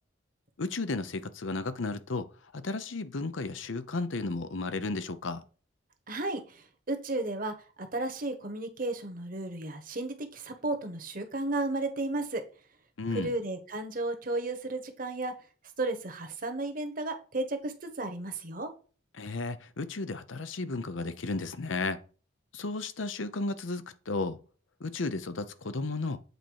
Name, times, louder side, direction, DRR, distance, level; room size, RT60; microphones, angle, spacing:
voice 1, 0.6-2.3 2.5-5.4 13.0-13.3 19.1-22.0 22.5-24.4 24.8-26.2, left 3 dB, 85° left, 0.8 m, -33 dB
voice 2, 6.1-12.4 13.1-15.3 15.8-18.7, right 2 dB, 45° right, 1.3 m, -33 dB
8.0 x 4.4 x 4.7 m
head